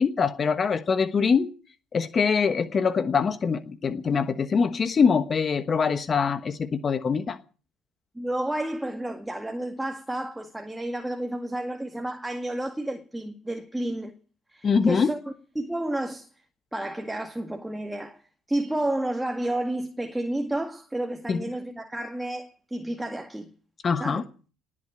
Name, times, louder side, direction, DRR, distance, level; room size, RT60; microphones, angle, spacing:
voice 1, 0.0-1.5 1.9-7.4 14.6-15.1 21.3-21.4 23.8-24.2, left 5 dB, 35° left, 1.2 m, -23 dB
voice 2, 8.1-14.1 14.5-16.3 16.7-18.2 18.5-23.5 24.0-24.2, right 1 dB, 10° right, 2.0 m, -31 dB
19.0 x 7.7 x 9.2 m
supercardioid pair, 85°, 0 cm